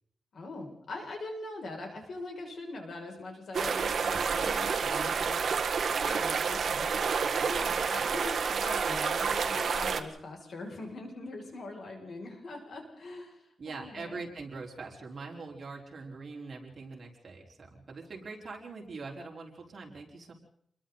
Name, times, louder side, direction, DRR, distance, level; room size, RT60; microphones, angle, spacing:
voice 1, 0.3-14.2, left 2 dB, 60° left, 1 dB, 6.7 m, -42 dB
sound 1, 3.5-10.0, right 6 dB, 60° right, 1.7 m, -29 dB
voice 2, 13.6-20.3, right 3 dB, 45° right, -1 dB, 4.8 m, -43 dB
28.5 x 22.5 x 4.2 m, 0.66 s
wide cardioid pair, 130°, 0 cm